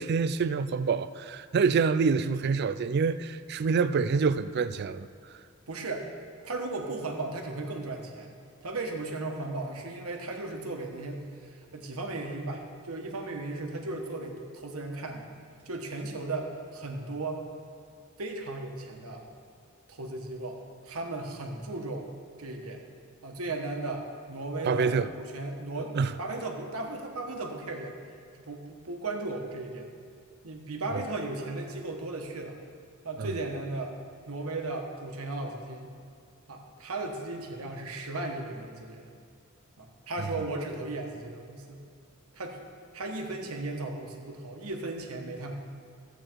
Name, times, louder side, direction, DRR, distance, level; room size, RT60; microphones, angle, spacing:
voice 1, 0.0-5.1 24.7-25.1 26.0-26.1 33.2-33.3, right 5 dB, 50° right, 0.4 m, -26 dB
voice 2, 5.7-6.1 6.4-8.3 8.6-15.2 15.6-17.4 18.2-19.2 19.9-22.1 22.4-22.8 23.2-27.9 28.3-29.9 30.4-32.6 33.0-33.9 34.3-35.9 36.5-39.2 39.8-41.8 42.3-42.6 42.9-45.5, right 2 dB, 85° right, 1.3 m, -36 dB
13.5 x 8.1 x 4.5 m
head